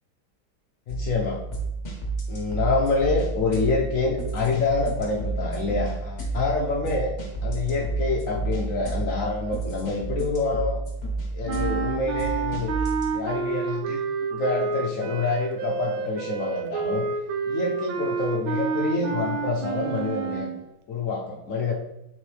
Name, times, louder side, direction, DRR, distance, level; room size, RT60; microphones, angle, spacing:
voice 1, 0.9-1.4 2.3-7.1 7.4-10.8 11.3-12.7 13.1-14.0 14.3-17.1 17.5-20.5 20.9-21.7, left 3 dB, 65° left, -1 dB, 0.8 m, -27 dB
sound 1, 0.9-13.1, right 3 dB, 40° left, 1.5 m, -31 dB
sound 2, 11.5-20.6, right 5 dB, 85° right, 1.5 m, -29 dB
7.3 x 4.3 x 3.3 m, 0.87 s
omnidirectional pair, 2.2 m